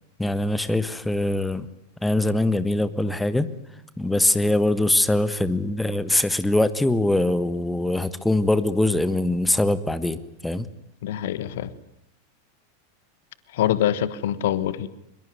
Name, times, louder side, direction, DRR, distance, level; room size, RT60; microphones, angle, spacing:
voice 1, 0.2-1.7 2.0-3.5 4.0-10.7, left 1 dB, 5° left, 14 dB, 1.4 m, -22 dB
voice 2, 11.0-11.7 13.5-14.9, left 11 dB, 55° left, 16 dB, 1.4 m, -24 dB
24.0 x 22.5 x 9.6 m, 0.82 s
figure-of-eight pair, 90°, 0 cm